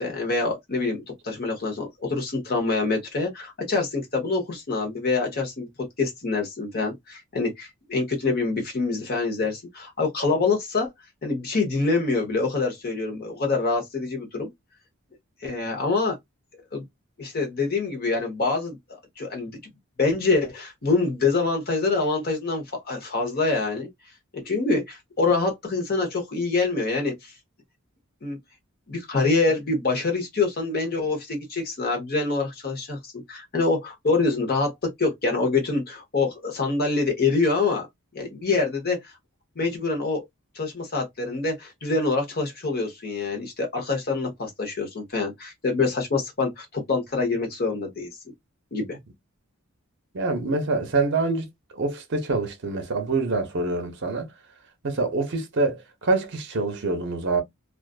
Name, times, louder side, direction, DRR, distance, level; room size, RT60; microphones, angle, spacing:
voice 1, 0.0-5.7 6.0-10.9 11.2-14.5 15.4-16.1 16.7-16.8 17.2-18.8 19.2-19.6 20.0-23.9 24.3-27.3 28.2-28.4 28.9-37.9 38.1-39.1 39.6-40.2 40.5-48.1 48.7-49.0, left 3 dB, 45° left, 0.9 m, -25 dB
voice 2, 50.1-51.5 51.7-54.3 54.8-57.4, right 3 dB, 55° right, 0.6 m, -25 dB
2.4 x 2.4 x 2.3 m
head